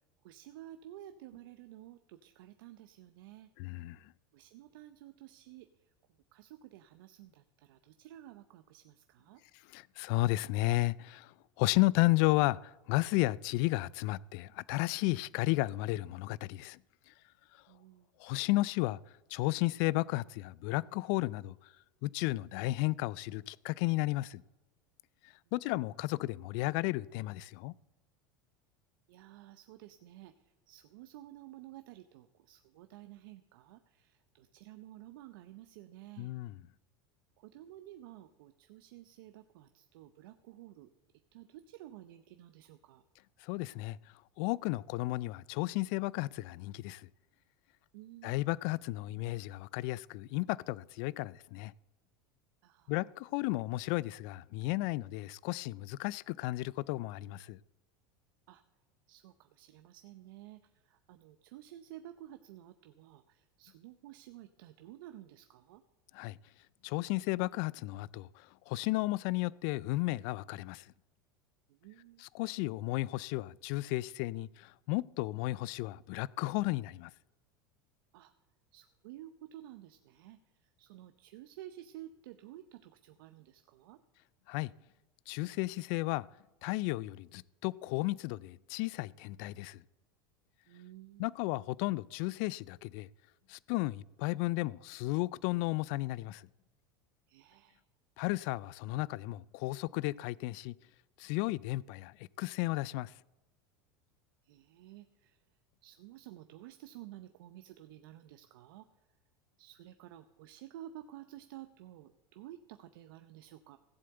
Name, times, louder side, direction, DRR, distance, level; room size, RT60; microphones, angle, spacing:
voice 1, 0.2-3.5 4.3-5.9 6.3-9.4 17.7-18.1 29.1-36.3 37.4-40.9 41.3-43.0 47.9-48.5 52.6-52.9 58.5-58.6 59.1-65.8 71.7-72.3 78.1-78.3 78.7-84.0 90.7-91.3 97.3-97.8 104.4-105.4 105.8-108.9 109.6-113.8, right 13 dB, 70° right, 0.7 m, -52 dB
voice 2, 3.6-4.0 9.7-16.8 17.1-17.2 18.2-19.0 19.3-21.6 22.0-24.4 25.5-27.7 36.2-36.5 43.4-44.0 44.4-47.1 48.2-51.7 52.9-57.6 66.1-66.4 66.8-68.3 68.7-70.9 72.2-77.1 84.5-84.7 85.3-86.3 86.6-89.8 91.2-93.1 93.5-96.5 98.2-100.7 101.2-103.1, left 20 dB, 60° left, 0.4 m, -33 dB
15.5 x 7.7 x 7.8 m
hypercardioid pair, 95°, 12 cm